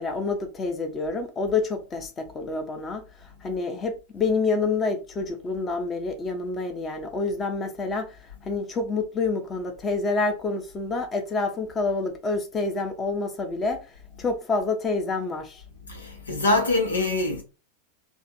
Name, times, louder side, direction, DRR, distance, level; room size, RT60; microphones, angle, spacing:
voice 1, 0.0-13.9 14.2-15.6, left 3 dB, 20° left, 1.0 m, -28 dB
voice 2, 15.9-17.4, left 2 dB, 75° left, 1.2 m, -24 dB
3.5 x 2.5 x 4.3 m
figure-of-eight pair, 90°, 0 cm